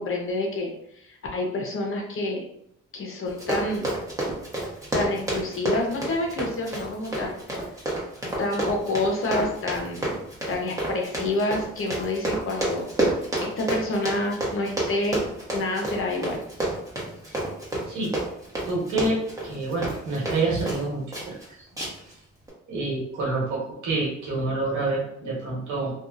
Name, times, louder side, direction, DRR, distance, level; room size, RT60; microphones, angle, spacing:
voice 1, 0.0-2.4 2.9-3.9 4.9-7.4 8.4-10.2 10.5-12.9 13.4-15.2 15.5-16.4, left 2 dB, 45° left, 0 dB, 0.7 m, -28 dB
Run, 3.3-20.8 21.1-21.4 21.8-22.1 22.5-22.6, right 1 dB, 10° right, 1.0 m, -29 dB
voice 2, 18.7-21.3 22.7-25.9, right 2 dB, 75° right, -4 dB, 1.3 m, -27 dB
2.6 x 2.3 x 2.5 m, 0.72 s
cardioid pair, 90°, 30 cm